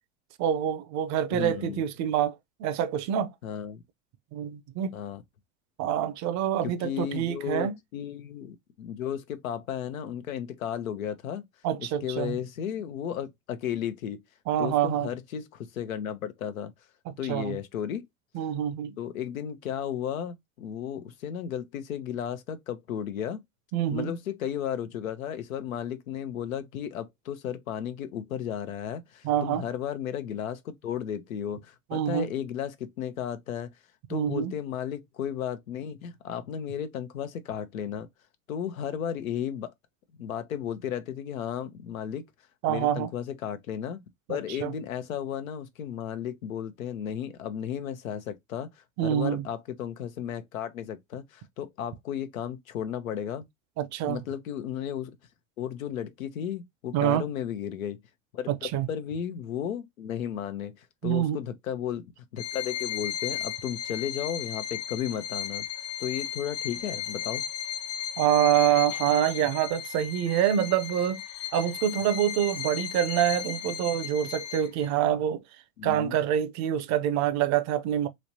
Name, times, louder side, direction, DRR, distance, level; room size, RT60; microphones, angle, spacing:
voice 1, 0.4-3.3 4.3-4.9 5.8-7.8 11.6-12.4 14.5-15.1 17.1-17.6 18.3-18.9 23.7-24.1 29.2-29.6 31.9-32.3 34.1-34.5 42.6-43.1 44.3-44.7 49.0-49.4 53.8-54.2 56.9-57.2 58.5-58.9 61.0-61.4 68.2-71.2 71.5-75.4 75.8-78.1, right 10 dB, 45° right, 0.6 m, -26 dB
voice 2, 1.3-1.8 3.4-3.8 4.9-5.2 6.6-11.4 11.8-14.2 14.6-16.7 17.2-18.0 19.0-23.4 23.9-33.7 34.1-38.1 38.5-39.7 40.2-42.2 42.7-44.0 44.3-48.7 49.0-53.4 54.1-55.1 55.6-58.0 58.3-62.0 62.3-65.7 66.0-67.4 75.8-76.1, left 9 dB, 85° left, 0.7 m, -34 dB
Bowed string instrument, 62.4-74.9, left 10 dB, 40° left, 0.8 m, -35 dB
3.2 x 3.0 x 2.7 m
hypercardioid pair, 90°, 40 cm